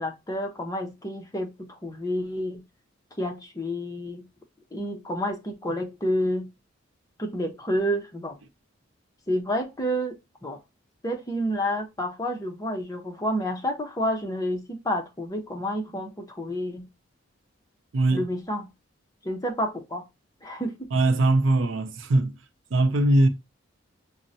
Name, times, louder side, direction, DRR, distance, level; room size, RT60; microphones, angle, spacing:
voice 1, 0.0-2.6 3.2-4.3 4.7-6.5 7.2-8.4 9.3-10.2 10.4-10.6 11.0-16.9 18.1-18.7 19.2-20.0 20.4-20.9, equal, 15° left, 0.6 m, -29 dB
voice 2, 17.9-18.3 20.9-22.3 22.7-23.3, right 2 dB, 70° right, 0.5 m, -21 dB
6.0 x 2.1 x 2.6 m
head